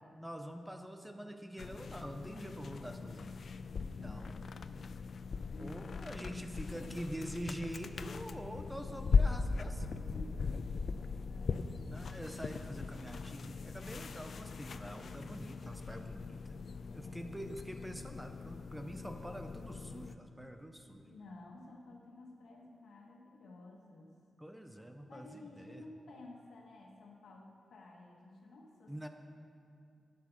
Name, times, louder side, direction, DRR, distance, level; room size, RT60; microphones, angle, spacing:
voice 1, 0.2-3.4 3.8-4.3 5.6-10.2 11.9-16.6 16.9-21.1 24.4-25.8 28.9-29.1, equal, 5° right, 6 dB, 0.5 m, -45 dB
sound 1, 1.6-20.2, left 5 dB, 50° left, 0.3 m, -39 dB
voice 2, 3.8-4.4 5.5-5.8 6.2-7.4 10.1-10.7 11.2-12.1 16.7-17.4 21.0-24.1 25.1-29.1, left 2 dB, 90° left, 0 dB, 1.5 m, -54 dB
9.3 x 8.0 x 6.0 m, 2.5 s
wide cardioid pair, 170°, 0 cm